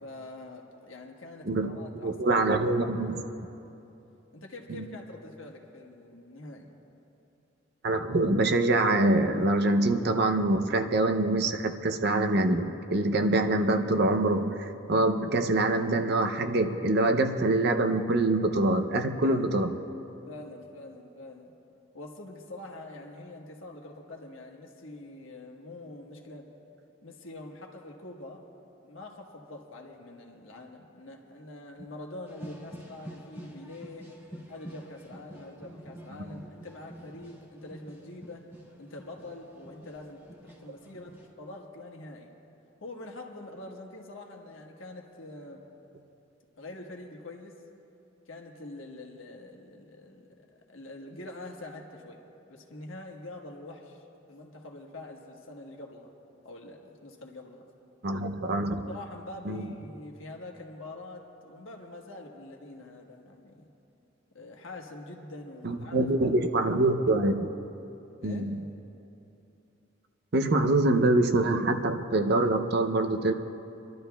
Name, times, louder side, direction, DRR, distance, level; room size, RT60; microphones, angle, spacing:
voice 1, 0.0-2.4 2.8-2.9 4.3-6.7 19.2-19.5 20.3-21.5 21.9-26.5 27.0-28.4 28.8-34.1 34.5-38.5 38.8-42.3 42.8-45.6 46.6-47.6 48.3-56.1 56.4-57.6 58.9-63.7 64.3-66.3 68.2-68.5, left 2 dB, 85° left, 1 dB, 1.3 m, -45 dB
voice 2, 1.5-1.8 2.0-3.2 4.7-4.8 7.8-19.7 58.0-58.8 59.5-59.7 65.6-67.5 68.2-68.6 70.3-73.3, right 2 dB, 55° right, 6 dB, 0.6 m, -25 dB
sound 1, 32.3-41.3, equal, 15° right, 1.7 m, -48 dB
28.5 x 12.0 x 2.3 m, 2.8 s
head